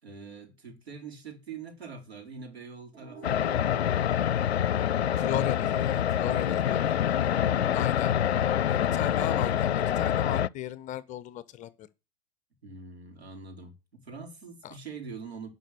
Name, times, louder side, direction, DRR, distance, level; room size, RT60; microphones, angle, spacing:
voice 1, 0.0-4.2 6.2-8.3 12.6-15.5, right 4 dB, 75° right, 4.2 m, -44 dB
sound 1, 2.9-5.9, right 4 dB, 35° right, 4.4 m, -50 dB
sound 2, 3.2-10.5, left 10 dB, 75° left, 0.5 m, -26 dB
voice 2, 5.2-6.8 7.7-8.1 8.7-11.9 14.6-14.8, left 11 dB, 25° left, 0.6 m, -36 dB
11.5 x 5.5 x 8.4 m
figure-of-eight pair, 100°, 32 cm